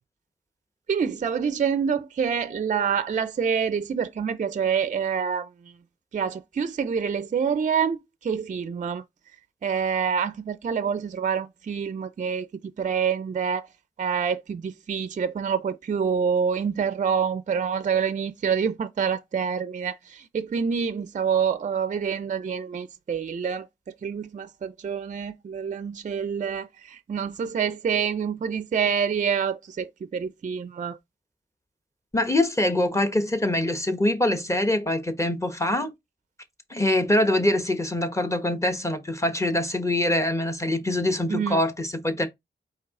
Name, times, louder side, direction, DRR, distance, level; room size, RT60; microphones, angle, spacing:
voice 1, 0.9-5.5 6.1-8.0 8.2-9.0 9.6-12.5 12.8-13.6 14.0-23.6 24.0-26.7 27.1-31.0 41.3-41.6, right 7 dB, 40° right, 0.4 m, -26 dB
voice 2, 32.1-35.9 36.7-42.3, left 1 dB, 15° left, 1.0 m, -24 dB
4.6 x 2.8 x 3.6 m
cardioid pair, 65°, 19 cm